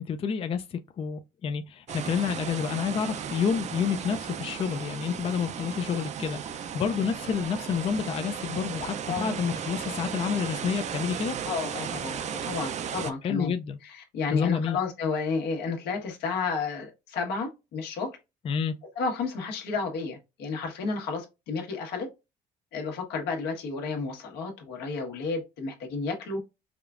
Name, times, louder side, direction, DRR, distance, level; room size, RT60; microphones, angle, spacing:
voice 1, 0.0-11.4 13.2-13.8 14.3-14.8 18.4-18.7, left 7 dB, 35° left, 0.4 m, -29 dB
sound 1, 1.9-13.1, right 8 dB, 45° right, 0.4 m, -35 dB
voice 2, 11.4-13.5 13.8-18.1 19.0-22.1 22.7-26.4, left 4 dB, 80° left, 1.4 m, -32 dB
4.9 x 2.3 x 2.4 m
cardioid pair, 110°, 17 cm